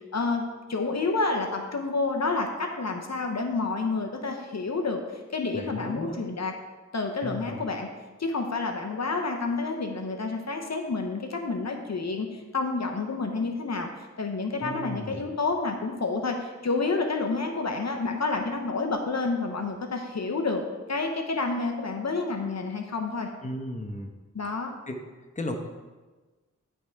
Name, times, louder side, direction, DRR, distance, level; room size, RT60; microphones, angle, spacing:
voice 1, 0.1-0.4 0.7-6.5 6.9-7.9 8.2-20.6 20.9-23.3 24.3-24.7, left 3 dB, 60° left, 3 dB, 0.9 m, -29 dB
voice 2, 5.5-6.2 7.2-7.6 14.6-15.2 23.4-24.1 24.9-25.0 25.4-25.6, left 1 dB, 25° left, 3 dB, 0.9 m, -35 dB
11.0 x 3.7 x 4.5 m, 1.3 s
wide cardioid pair, 55°, 31 cm